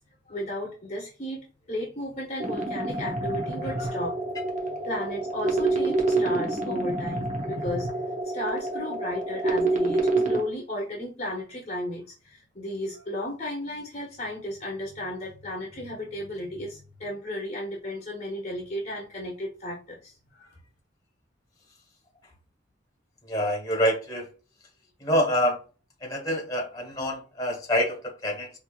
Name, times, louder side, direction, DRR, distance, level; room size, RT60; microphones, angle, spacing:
voice 1, 0.3-4.2 4.7-7.9 8.3-20.5, left 1 dB, 35° left, -2 dB, 1.0 m, -34 dB
sound 1, 2.4-10.4, right 2 dB, 40° right, 0.8 m, -27 dB
voice 2, 23.3-24.3 25.0-25.6 26.0-28.5, equal, 20° left, 0 dB, 1.3 m, -26 dB
4.4 x 2.8 x 2.4 m, 0.34 s
head